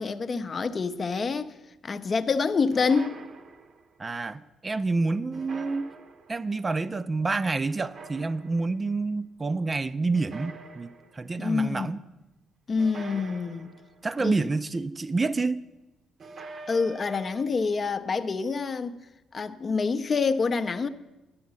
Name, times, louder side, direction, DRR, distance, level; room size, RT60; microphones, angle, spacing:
voice 1, 0.0-1.6 1.8-3.2 11.4-11.9 12.7-13.7 14.2-14.5 16.7-19.0 19.3-20.9, left 4 dB, 35° left, 0.5 m, -27 dB
sound 1, 2.7-3.9 5.3-6.5 7.8-8.8 10.1-11.3 12.8-14.1 16.2-17.4, right 3 dB, 45° right, 0.7 m, -44 dB
voice 2, 4.0-5.8 6.3-12.0 14.0-15.6, right 3 dB, 25° right, 0.3 m, -28 dB
10.0 x 7.0 x 6.9 m
figure-of-eight pair, 45°, 0 cm